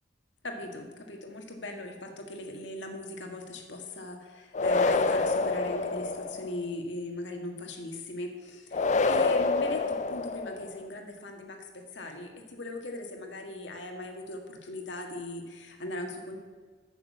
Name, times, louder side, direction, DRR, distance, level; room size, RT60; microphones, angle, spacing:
voice 1, 0.4-16.4, left 1 dB, 75° left, 3 dB, 1.8 m, -39 dB
sound 1, 4.5-6.6 8.7-10.8, left 3 dB, 40° left, 0.5 m, -27 dB
8.7 x 6.8 x 8.1 m, 1.5 s
head